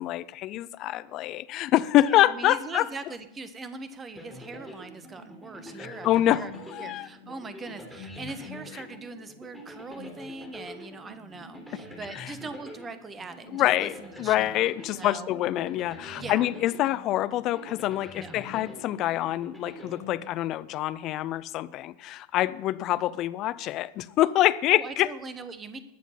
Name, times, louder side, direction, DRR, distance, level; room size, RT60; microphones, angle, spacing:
voice 1, 0.0-2.9 5.8-7.1 11.7-11.8 12.1-12.3 13.5-25.1, left 14 dB, 35° left, 0.6 m, -26 dB
voice 2, 2.0-6.5 6.8-15.3 16.2-16.5 18.2-18.4 24.7-25.8, right 3 dB, 20° right, 1.3 m, -41 dB
sound 1, 4.2-20.7, left 1 dB, 5° right, 3.4 m, -45 dB
20.0 x 7.2 x 5.7 m
figure-of-eight pair, 90°, 0 cm